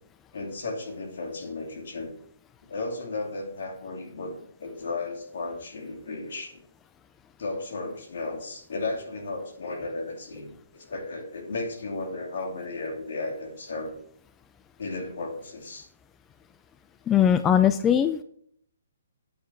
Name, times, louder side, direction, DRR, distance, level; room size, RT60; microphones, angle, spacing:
voice 1, 0.3-2.1 2.7-4.3 4.6-6.6 7.4-13.9 14.8-15.9, left 3 dB, 70° left, 3 dB, 2.6 m, -34 dB
voice 2, 17.1-18.2, left 9 dB, 15° left, 11 dB, 0.3 m, -20 dB
8.6 x 5.6 x 6.1 m, 0.64 s
hypercardioid pair, 160°, 0 cm